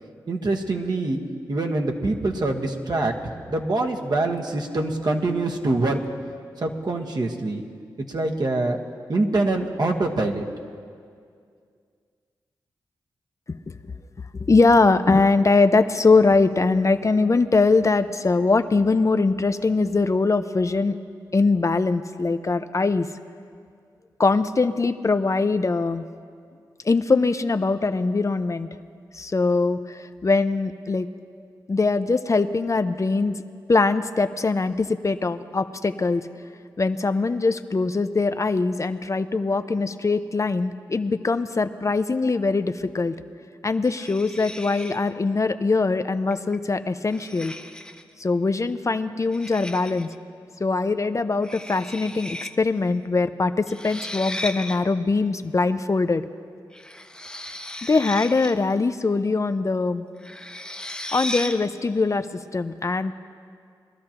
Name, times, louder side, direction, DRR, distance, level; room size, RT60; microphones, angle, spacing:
voice 1, 0.3-1.2 1.5-6.0 6.6-7.6 8.1-8.8 9.1-10.5, right 2 dB, 55° right, 2 dB, 1.3 m, -24 dB
voice 2, 14.3-21.0 21.3-23.1 24.2-26.1 26.8-28.7 29.1-31.1 31.7-33.4 33.7-36.3 36.8-43.1 43.6-47.5 48.2-50.1 50.6-56.2 57.8-60.0 61.1-62.3 62.5-63.1, left 3 dB, 40° left, 10 dB, 0.5 m, -22 dB
sound 1, 43.8-45.1 46.3-46.6 47.1-48.1 49.3-50.1 51.4-52.5 52.8-52.9 53.7-54.8 56.7-58.7 60.2-61.7, left 1 dB, 10° left, 0.9 m, -36 dB
22.0 x 12.5 x 2.9 m, 2.2 s
cardioid pair, 40°, 8 cm